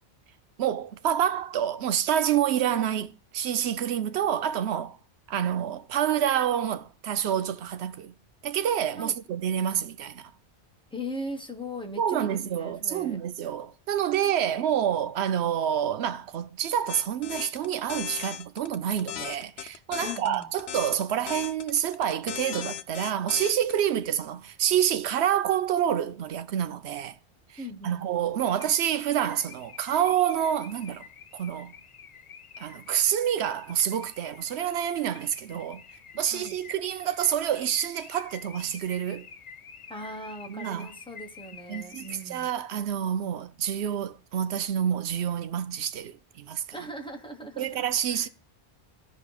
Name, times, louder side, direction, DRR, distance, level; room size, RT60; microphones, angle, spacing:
voice 1, 0.6-5.0 5.3-8.1 8.4-10.3 12.0-27.2 27.8-31.0 31.3-31.7 32.6-35.8 36.1-39.3 40.5-40.9 41.7-46.6 47.6-48.3, right 9 dB, 75° right, 0.9 m, -28 dB
voice 2, 10.9-13.2 20.0-20.5 27.6-28.1 35.5-35.6 36.3-36.6 39.9-42.5 46.7-48.3, left 1 dB, 5° left, 1.1 m, -39 dB
sound 1, 16.9-23.8, left 10 dB, 70° left, 0.9 m, -36 dB
Car / Alarm, 28.4-42.5, left 7 dB, 50° left, 0.5 m, -49 dB
14.5 x 5.2 x 2.3 m
omnidirectional pair, 1.1 m